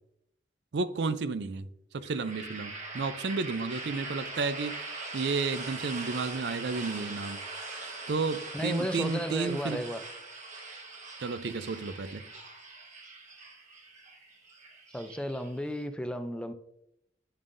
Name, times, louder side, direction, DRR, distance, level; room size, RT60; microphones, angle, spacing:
voice 1, 0.7-1.7 1.9-4.8 5.1-7.4 8.1-9.8 11.2-12.2, right 4 dB, 65° right, 0.5 m, -32 dB
sound 1, 2.0-15.8, right 3 dB, 40° right, 1.3 m, -42 dB
voice 2, 8.5-10.0 14.9-16.5, equal, 5° left, 0.4 m, -34 dB
10.5 x 7.2 x 2.6 m
head